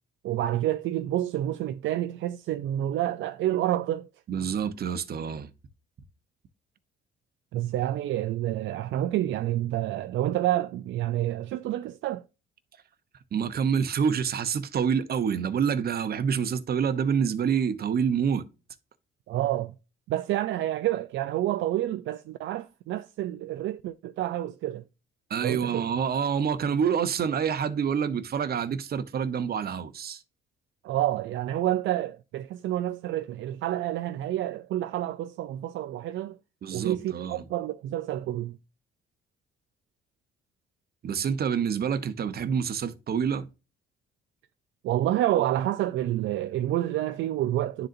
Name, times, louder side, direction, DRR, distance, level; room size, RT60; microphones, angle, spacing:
voice 1, 0.2-4.1 7.5-12.2 19.3-19.7 20.1-24.8 25.4-25.9 30.8-36.4 36.7-38.6 44.8-47.9, right 13 dB, 75° right, 0.4 m, -28 dB
voice 2, 4.3-5.5 13.3-18.5 25.3-30.2 36.6-37.4 41.0-43.5, right 7 dB, 50° right, 0.8 m, -27 dB
11.0 x 3.9 x 2.5 m
cardioid pair, 90°, 20 cm